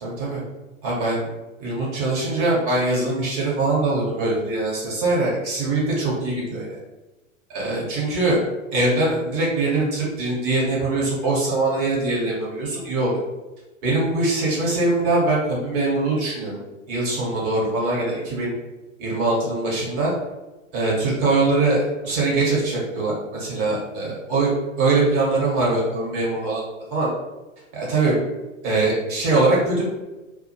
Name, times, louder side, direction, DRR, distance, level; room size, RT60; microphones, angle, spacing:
voice 1, 0.0-0.4 0.8-1.3 1.6-6.7 7.5-8.4 8.7-13.1 13.8-16.5 16.9-18.5 19.0-20.1 20.7-24.5 24.8-26.6 26.9-27.1 27.7-28.2 28.6-29.8, right 2 dB, 40° right, -4 dB, 1.1 m, -22 dB
2.2 x 2.1 x 2.9 m, 1.1 s
figure-of-eight pair, 100°, 41 cm